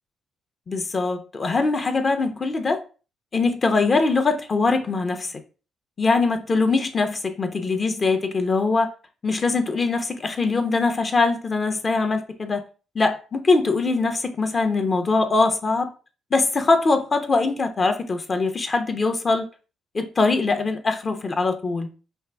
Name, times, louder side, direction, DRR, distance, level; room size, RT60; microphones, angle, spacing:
voice 1, 0.7-2.8 3.3-5.4 6.0-8.9 9.2-12.6 12.9-15.9 16.3-19.5 19.9-21.9, left 3 dB, 35° left, 0.8 m, -22 dB
5.5 x 2.5 x 3.4 m
cardioid pair, 90°, 0 cm